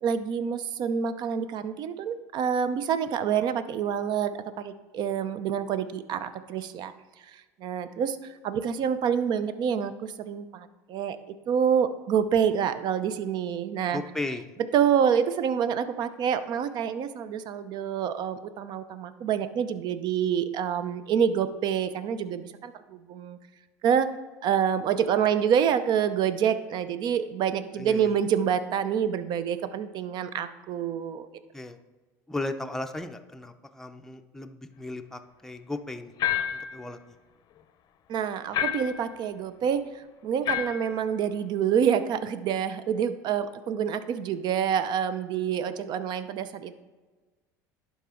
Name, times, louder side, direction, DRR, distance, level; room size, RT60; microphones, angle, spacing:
voice 1, 0.0-6.9 7.3-14.0 14.7-23.4 23.8-24.1 24.4-31.3 38.1-46.8, right 8 dB, 55° right, 13 dB, 0.6 m, -27 dB
voice 2, 13.9-14.5 27.8-28.1 31.5-31.8 32.3-36.1 36.5-37.1, left 2 dB, 5° left, 6 dB, 0.6 m, -36 dB
sound 1, 36.2-36.8 38.5-39.0 40.5-40.9, left 10 dB, 50° left, 0.6 m, -28 dB
11.5 x 4.2 x 3.7 m, 1.3 s
supercardioid pair, 90°, 9 cm